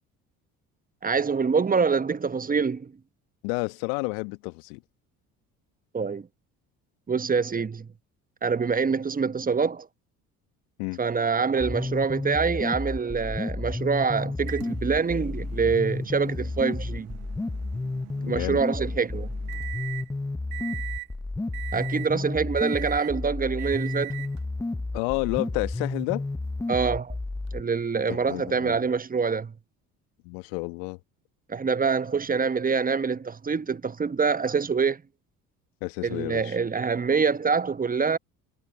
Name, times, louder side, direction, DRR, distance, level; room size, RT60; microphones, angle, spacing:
voice 1, 1.0-2.9 5.9-6.3 7.1-7.9 8.4-9.9 11.0-17.2 18.3-19.3 21.7-24.2 26.7-27.1 27.5-29.5 31.5-35.0 36.0-38.2, right 5 dB, 20° right, 1.1 m, -25 dB
voice 2, 3.4-4.8 10.8-11.0 18.2-18.6 24.9-26.2 28.1-28.8 30.2-31.0 35.8-36.6, left 35 dB, 65° left, 1.6 m, -30 dB
sound 1, 11.6-27.6, left 2 dB, 5° left, 0.8 m, -31 dB
Microwave oven, 14.5-20.1 20.5-21.1 21.5-22.2 22.6-23.2 23.6-24.4 25.4-25.5 27.5-27.6, right 32 dB, 65° right, 1.1 m, -41 dB
figure-of-eight pair, 55°, 45 cm